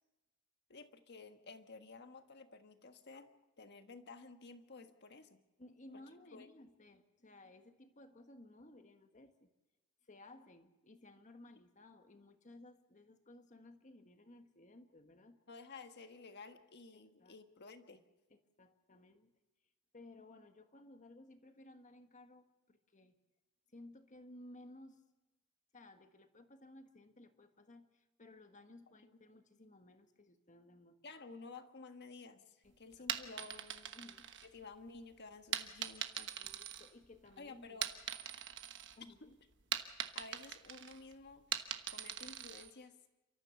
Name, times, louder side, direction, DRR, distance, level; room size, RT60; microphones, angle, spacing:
voice 1, 0.7-3.3 3.6-5.4 6.3-6.5 15.5-18.0 31.0-33.9 34.4-36.4 37.4-37.9 39.2-39.3 40.1-41.4 41.9-42.9, left 4 dB, 50° left, 8 dB, 1.5 m, -53 dB
voice 2, 5.6-9.5 10.1-15.4 16.9-17.4 18.3-19.3 19.9-23.2 23.7-25.0 25.7-31.0 32.6-33.1 33.9-34.3 36.3-37.8 38.9-39.4, left 1 dB, 35° left, 7 dB, 1.5 m, -58 dB
sound 1, 32.9-34.9 35.5-37.3 37.7-39.0 39.3-42.7, right 9 dB, 55° right, 1.2 m, -42 dB
29.5 x 14.0 x 7.0 m, 1.1 s
head